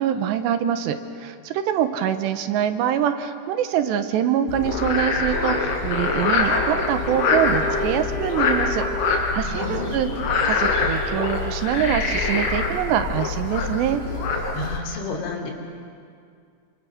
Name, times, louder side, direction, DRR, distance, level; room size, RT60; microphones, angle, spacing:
voice 1, 0.0-10.1 10.4-14.0, right 9 dB, 75° right, 9 dB, 3.0 m, -24 dB
Frog, 4.5-14.8, left 4 dB, 60° left, 5.4 m, -24 dB
Wind instrument woodwind instrument, 5.9-10.2, left 1 dB, 35° left, 3.8 m, -35 dB
voice 2, 9.3-10.4 14.5-15.5, left 2 dB, 85° left, 1 dB, 5.4 m, -32 dB
27.0 x 25.5 x 6.4 m, 2.2 s
omnidirectional pair, 5.2 m